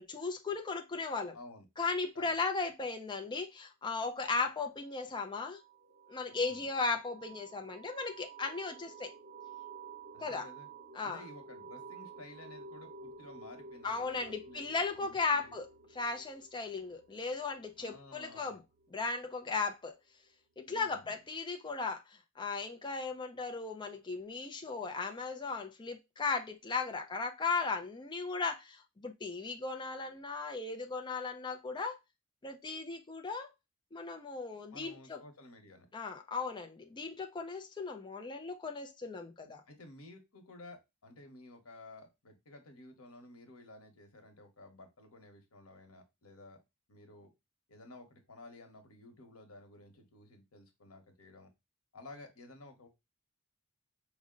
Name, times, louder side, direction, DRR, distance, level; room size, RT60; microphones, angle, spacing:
voice 1, 0.0-1.4 1.8-5.6 6.1-9.1 10.2-10.5 10.9-11.2 13.8-15.7 15.9-18.6 18.9-19.9 20.6-32.0 32.4-33.5 33.9-35.2 35.9-39.6, left 4 dB, 20° left, 0.5 m, -36 dB
voice 2, 1.3-1.7 2.1-2.3 6.3-6.6 10.1-10.7 11.0-15.6 17.8-18.6 20.7-21.1 34.7-35.9 39.7-46.6 46.9-47.3 47.7-51.5 51.9-52.9, left 2 dB, 90° left, 1.1 m, -54 dB
sound 1, 5.1-19.6, right 5 dB, 35° right, 0.6 m, -52 dB
5.0 x 2.1 x 3.7 m
head